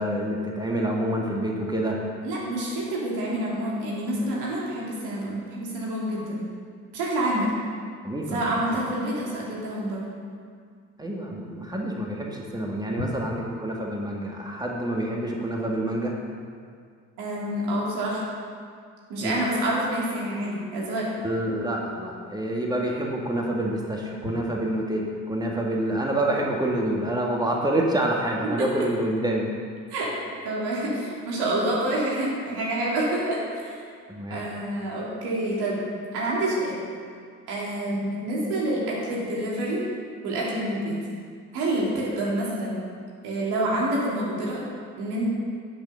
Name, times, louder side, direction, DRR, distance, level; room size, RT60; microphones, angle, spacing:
voice 1, 0.0-2.0 8.0-8.8 11.0-16.1 19.2-19.3 21.2-29.5 34.1-34.4, right 1 dB, 10° right, -1 dB, 1.8 m, -27 dB
voice 2, 2.2-6.4 6.9-7.5 8.3-10.1 17.2-18.2 19.1-21.1 28.6-28.7 29.9-30.1 30.4-33.8 34.3-35.8 36.1-36.8 37.5-39.8 40.2-41.0 41.5-42.8 43.2-44.6 45.0-45.3, right 1 dB, 70° right, -5 dB, 2.9 m, -27 dB
10.5 x 6.3 x 6.8 m, 2.1 s
hypercardioid pair, 50°, 41 cm